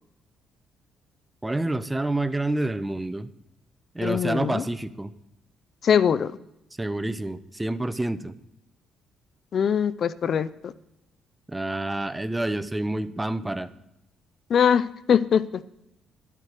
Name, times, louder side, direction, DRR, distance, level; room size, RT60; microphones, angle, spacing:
voice 1, 1.4-3.3 3.9-5.1 6.8-8.3 11.5-13.7, right 2 dB, 10° right, 13 dB, 0.8 m, -28 dB
voice 2, 4.0-4.7 5.8-6.4 9.5-10.7 14.5-15.6, left 7 dB, 55° left, 17 dB, 0.5 m, -22 dB
12.5 x 12.0 x 5.0 m, 0.85 s
supercardioid pair, 75°, 0 cm